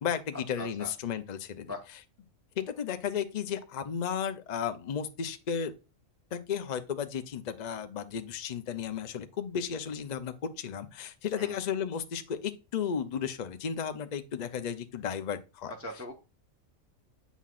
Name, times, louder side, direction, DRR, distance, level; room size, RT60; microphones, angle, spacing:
voice 1, 0.0-1.7 2.6-5.7 6.3-15.7, left 7 dB, 45° left, 0.6 m, -34 dB
voice 2, 0.6-0.9 1.7-1.8 11.4-11.6 15.8-16.1, left 1 dB, 10° right, 0.9 m, -40 dB
8.3 x 5.8 x 2.4 m
omnidirectional pair, 1.4 m